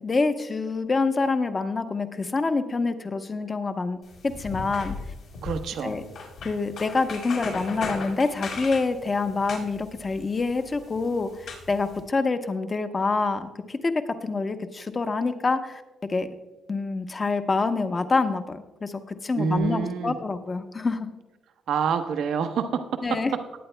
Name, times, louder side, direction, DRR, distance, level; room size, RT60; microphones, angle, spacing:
voice 1, 0.0-5.0 5.8-6.0 6.4-13.9 14.2-15.8 16.1-16.3 16.7-21.1 23.0-23.3, left 3 dB, 30° left, 8 dB, 0.9 m, -26 dB
sound 1, 4.0-12.0, left 3 dB, 80° left, 4.0 m, -38 dB
voice 2, 5.4-6.0 19.4-20.2 21.7-23.2, right 6 dB, 75° right, 7 dB, 0.8 m, -27 dB
19.0 x 8.8 x 2.2 m, 1.1 s
cardioid pair, 90°, 0 cm